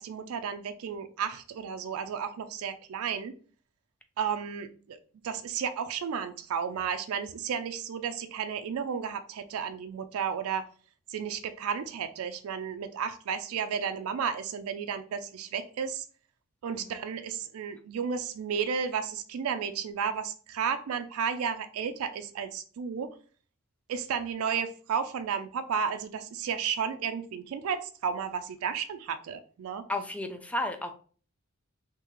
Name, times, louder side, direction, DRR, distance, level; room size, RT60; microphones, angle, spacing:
voice 1, 0.0-3.3 4.2-5.0 5.2-10.7 11.1-16.0 16.6-23.1 23.9-29.8, right 7 dB, 85° right, 9 dB, 0.4 m, -33 dB
voice 2, 29.9-30.9, left 1 dB, 5° left, 7 dB, 0.4 m, -33 dB
3.6 x 2.7 x 3.0 m, 0.42 s
head